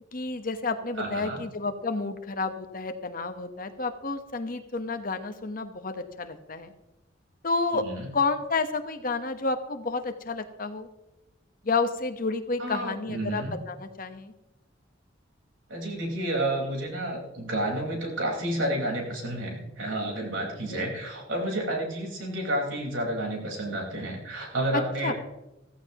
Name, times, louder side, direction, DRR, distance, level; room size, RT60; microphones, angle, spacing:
voice 1, 0.1-6.7 7.4-7.8 8.1-10.9 11.6-14.3 20.7-20.9 25.0-25.1, left 3 dB, 45° left, 8 dB, 1.1 m, -30 dB
voice 2, 1.0-1.4 7.7-8.1 12.6-13.5 15.7-25.1, right 1 dB, 85° right, -1 dB, 4.6 m, -30 dB
15.5 x 15.0 x 3.0 m, 0.98 s
head